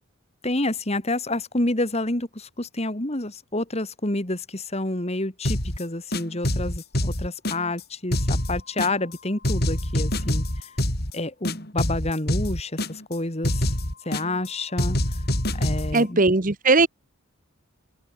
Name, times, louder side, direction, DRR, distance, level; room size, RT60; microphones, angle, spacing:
voice 1, 0.4-10.4 11.1-13.7 14.1-15.0 15.6-16.2, left 2 dB, 30° left, 2.4 m, -28 dB
sound 1, 5.4-5.8 6.1-7.8 8.1-9.1 9.4-11.1 11.4-13.1 13.4-14.5 14.8-16.0, left 1 dB, 50° left, 6.1 m, -26 dB
voice 2, 15.9-16.9, right 3 dB, 40° right, 1.2 m, -19 dB
open air
head